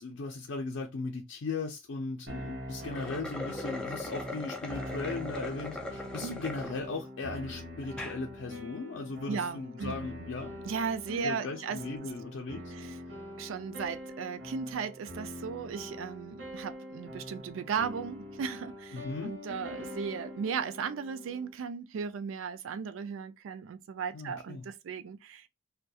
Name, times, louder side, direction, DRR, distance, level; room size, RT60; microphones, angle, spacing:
voice 1, 0.0-10.5 11.2-12.7 18.9-19.3 24.1-24.6, left 3 dB, 70° left, 0.4 m, -37 dB
sound 1, 2.3-21.5, left 1 dB, 65° right, 0.8 m, -43 dB
sound 2, 2.8-6.7 7.2-7.3 7.8-8.2, left 2 dB, 5° left, 0.3 m, -39 dB
voice 2, 9.3-10.3 10.6-11.8 12.7-13.0 13.4-25.5, right 6 dB, 90° right, 0.3 m, -36 dB
2.3 x 2.2 x 2.6 m
head